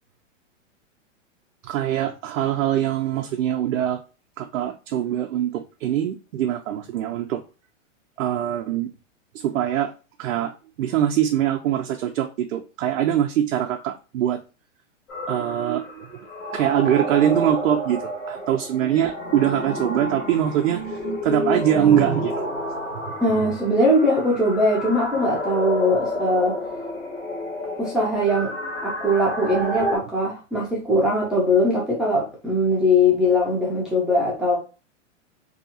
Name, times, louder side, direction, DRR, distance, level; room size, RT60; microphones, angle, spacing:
voice 1, 1.6-4.0 4.4-7.4 8.2-8.9 9.3-9.9 10.2-10.5 10.8-14.4 15.3-16.3 16.5-22.5, right 11 dB, 75° right, 0.5 m, -23 dB
sound 1, 15.1-30.0, left 1 dB, 70° left, 1.5 m, -30 dB
voice 2, 23.2-26.6 27.8-28.5 28.8-34.6, left 1 dB, ahead, 0.5 m, -21 dB
2.7 x 2.4 x 2.7 m
hypercardioid pair, 125°, 39 cm